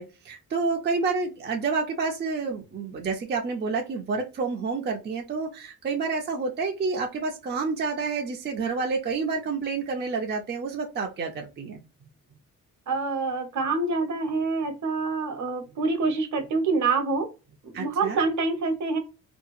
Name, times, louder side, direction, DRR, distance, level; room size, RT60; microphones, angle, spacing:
voice 1, 0.0-11.8 17.7-18.2, right 4 dB, 35° right, 2 dB, 0.4 m, -29 dB
voice 2, 12.9-17.3 17.7-19.0, right 3 dB, 60° right, 6 dB, 0.8 m, -26 dB
2.7 x 2.3 x 2.4 m, 0.29 s
wide cardioid pair, 160°, 32 cm